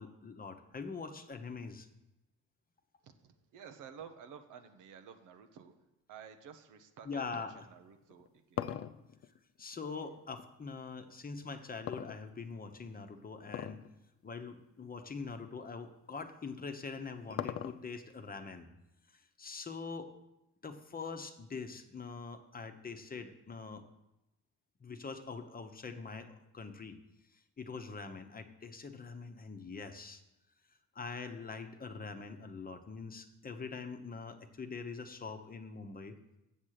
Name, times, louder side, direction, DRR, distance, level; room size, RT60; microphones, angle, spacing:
voice 1, 0.0-1.9 7.0-7.5 9.6-13.8 14.2-18.7 19.4-20.1 20.6-23.8 24.8-26.9 27.6-30.2 30.9-36.1, left 4 dB, 30° left, 7 dB, 0.9 m, -43 dB
voice 2, 3.0-5.8 6.1-8.7, right 7 dB, 85° right, 7 dB, 0.9 m, -52 dB
sound 1, 8.0-10.5 11.9-12.7 13.5-13.9 14.2-14.3 15.1-15.2 16.6-18.1, left 10 dB, 45° left, 0.5 m, -40 dB
7.4 x 7.3 x 6.5 m, 0.92 s
cardioid pair, 90°, 30 cm